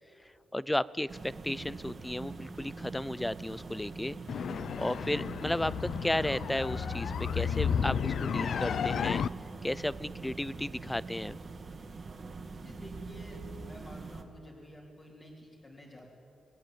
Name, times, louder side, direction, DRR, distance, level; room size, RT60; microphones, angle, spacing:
voice 1, 0.2-4.2 4.8-9.2 9.6-11.4, left 1 dB, 10° left, 19 dB, 0.5 m, -34 dB
sound 1, 1.1-14.2, right 4 dB, 35° right, 2.1 m, -43 dB
sound 2, 4.3-9.3, left 7 dB, 60° left, 0.5 m, -32 dB
voice 2, 12.6-16.1, left 1 dB, 30° left, -4 dB, 3.7 m, -50 dB
28.5 x 19.5 x 9.1 m, 2.8 s
wide cardioid pair, 140°, 0 cm